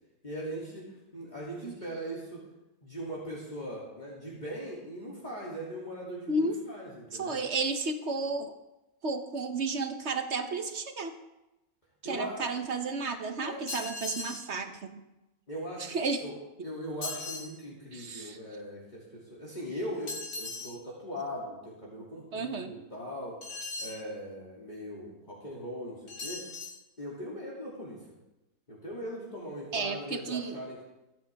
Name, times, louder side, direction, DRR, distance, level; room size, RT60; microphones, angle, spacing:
voice 1, 0.2-2.4 2.8-7.4 12.0-12.5 13.4-13.6 15.5-16.3 16.6-23.4 23.8-26.5 27.0-28.1 28.7-30.8, equal, 30° left, -7 dB, 2.8 m, -40 dB
voice 2, 6.3-6.6 7.1-8.5 9.0-11.1 12.0-15.0 15.8-16.2 17.9-18.4 22.3-22.7 29.7-30.6, right 3 dB, 55° right, 7 dB, 1.2 m, -32 dB
sound 1, 13.7-14.5 17.0-17.5 20.1-20.8 23.4-24.0 26.1-26.8, left 3 dB, 60° left, 1.7 m, -38 dB
24.5 x 9.1 x 3.5 m, 0.98 s
omnidirectional pair, 1.5 m